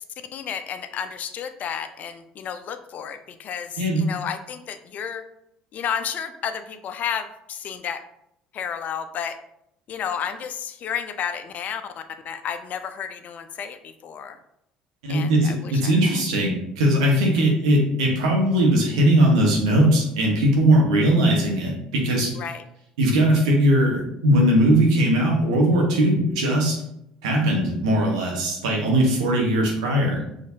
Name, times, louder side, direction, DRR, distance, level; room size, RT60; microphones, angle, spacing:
voice 1, 0.3-5.2 5.7-8.0 8.5-9.4 9.9-14.4 15.1-15.9 22.4-22.6, left 8 dB, 50° left, 9 dB, 0.4 m, -32 dB
voice 2, 15.0-22.3 23.0-26.8 27.2-30.2, right 1 dB, 85° right, -1 dB, 1.2 m, -19 dB
4.9 x 3.2 x 2.8 m, 0.79 s
hypercardioid pair, 70°, 3 cm